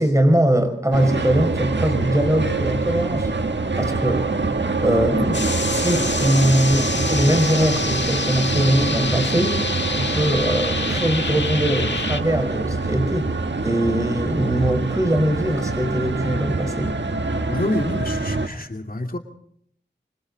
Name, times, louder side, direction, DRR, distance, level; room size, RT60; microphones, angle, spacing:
voice 1, 0.0-3.3 3.8-4.3 4.8-9.6 9.9-16.9, right 1 dB, 15° right, 5.2 m, -21 dB
sound 1, 0.9-18.5, right 3 dB, 85° right, 1.6 m, -25 dB
sound 2, 5.3-12.2, left 3 dB, 80° left, 1.8 m, -27 dB
voice 2, 17.4-19.2, left 1 dB, 55° left, 2.6 m, -27 dB
25.5 x 25.0 x 4.1 m
wide cardioid pair, 55°, 18 cm